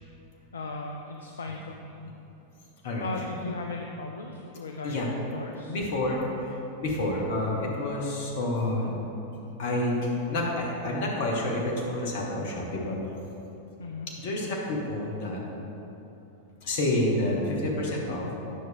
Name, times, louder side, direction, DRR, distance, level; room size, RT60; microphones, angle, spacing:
voice 1, 0.5-1.9 3.0-5.8 13.8-14.1, left 3 dB, 70° left, 2 dB, 0.5 m, -37 dB
voice 2, 5.7-9.0 9.6-13.0 14.2-15.4 16.6-18.3, left 1 dB, 50° left, -2 dB, 1.5 m, -29 dB
9.2 x 6.1 x 3.6 m, 2.9 s
figure-of-eight pair, 90°, 0 cm